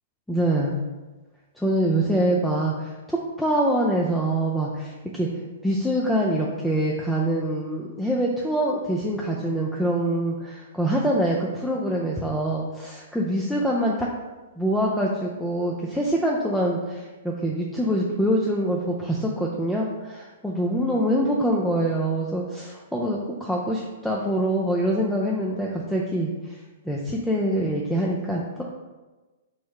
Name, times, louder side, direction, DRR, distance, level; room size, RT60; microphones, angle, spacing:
voice 1, 0.3-0.8 1.6-5.3 5.6-14.1 14.6-26.6 26.8-28.6, right 1 dB, ahead, -4 dB, 0.4 m, -25 dB
4.7 x 2.1 x 4.6 m, 1.2 s
hypercardioid pair, 135°, 0 cm